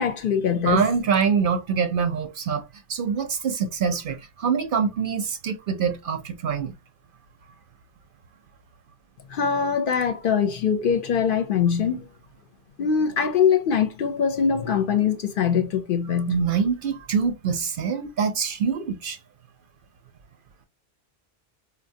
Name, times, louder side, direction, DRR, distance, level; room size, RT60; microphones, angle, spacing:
voice 1, 0.0-0.9 9.3-12.1 12.8-16.4, left 7 dB, 60° left, 0.7 m, -22 dB
voice 2, 0.6-2.6 2.9-6.7 16.3-19.2, right 6 dB, 60° right, 0.7 m, -24 dB
4.0 x 2.1 x 2.6 m
omnidirectional pair, 1.1 m